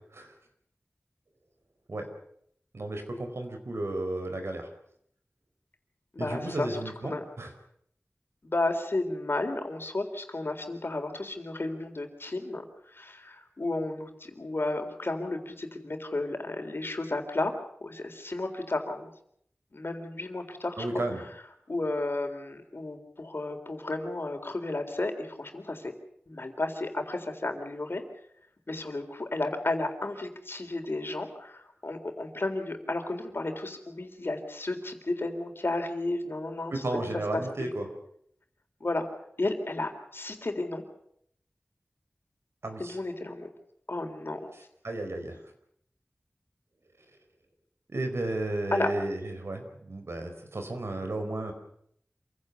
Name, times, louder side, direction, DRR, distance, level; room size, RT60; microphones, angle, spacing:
voice 1, 2.7-4.7 6.2-7.5 20.8-21.2 36.7-37.9 42.6-43.0 44.5-45.4 47.9-51.5, right 2 dB, 85° right, 5 dB, 4.6 m, -33 dB
voice 2, 6.1-6.8 7.0-7.2 8.4-12.6 12.9-17.5 17.8-19.1 19.7-21.0 21.7-25.9 26.3-28.0 28.7-36.8 37.3-37.7 38.8-39.1 39.4-40.8 42.8-43.5 43.9-44.4 48.7-48.9, left 2 dB, 60° left, 5 dB, 3.8 m, -33 dB
27.0 x 16.5 x 8.3 m, 0.70 s
wide cardioid pair, 60°, 4 cm